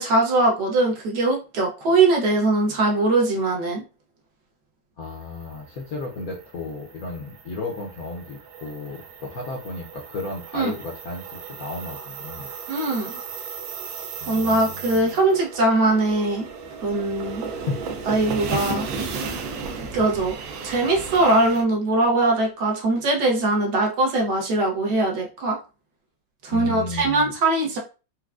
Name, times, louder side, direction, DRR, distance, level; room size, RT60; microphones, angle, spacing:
voice 1, 0.0-3.8 10.5-10.7 12.7-13.2 14.3-16.5 16.8-17.4 18.1-18.9 19.8-20.3 20.6-25.6 26.4-27.8, right 2 dB, 65° right, 0 dB, 1.3 m, -21 dB
voice 2, 5.0-12.5 14.2-15.1 17.5-17.8 26.5-27.3, left 3 dB, 65° left, 0 dB, 0.9 m, -34 dB
sound 1, 5.2-21.6, right 5 dB, 90° right, 1.4 m, -35 dB
4.5 x 2.2 x 2.4 m, 0.32 s
omnidirectional pair, 2.1 m